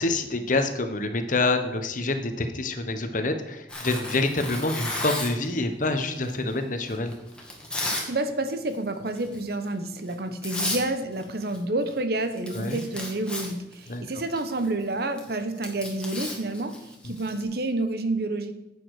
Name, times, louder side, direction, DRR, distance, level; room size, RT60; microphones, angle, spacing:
voice 1, 0.0-7.2 12.5-12.8 13.9-14.0 17.0-17.1, left 2 dB, 50° left, 7 dB, 1.2 m, -27 dB
Tearing, 3.7-5.5 6.2-8.1 8.4-8.8 9.2-9.4 10.1-10.2 10.4-10.8 11.1-11.6 11.9-12.0 12.2-17.4, left 1 dB, 5° left, 2.1 m, -34 dB
voice 2, 7.9-16.7 17.0-18.5, right 2 dB, 60° right, 9 dB, 1.1 m, -29 dB
10.5 x 8.6 x 4.9 m, 0.98 s
head